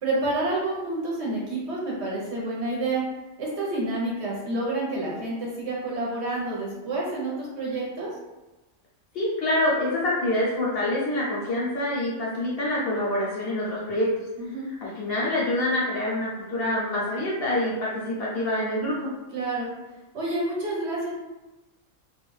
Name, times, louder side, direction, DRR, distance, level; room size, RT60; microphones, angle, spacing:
voice 1, 0.0-3.0 3.4-8.1 14.4-14.7 19.3-19.7 20.1-21.1, right 2 dB, 60° right, -4 dB, 0.9 m, -29 dB
voice 2, 9.1-14.2 14.8-19.0, left 1 dB, 60° left, -6 dB, 0.7 m, -26 dB
2.4 x 2.2 x 3.0 m, 1.1 s
omnidirectional pair, 1.4 m